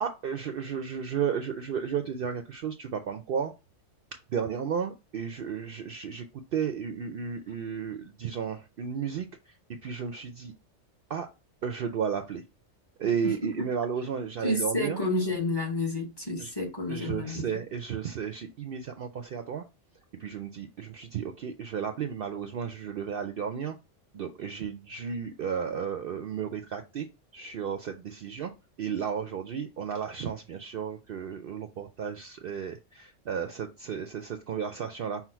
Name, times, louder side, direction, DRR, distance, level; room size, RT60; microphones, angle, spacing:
voice 1, 0.0-3.5 4.3-6.2 6.5-9.3 9.8-10.5 11.1-11.3 11.6-12.4 13.0-15.0 16.4-16.5 16.9-19.6 20.2-23.8 24.1-27.1 27.3-28.5 28.8-35.2, right 7 dB, 60° right, 0.6 m, -33 dB
voice 2, 13.2-13.7 14.4-17.6, left 2 dB, 20° left, 1.0 m, -30 dB
5.8 x 2.1 x 4.4 m
omnidirectional pair, 1.3 m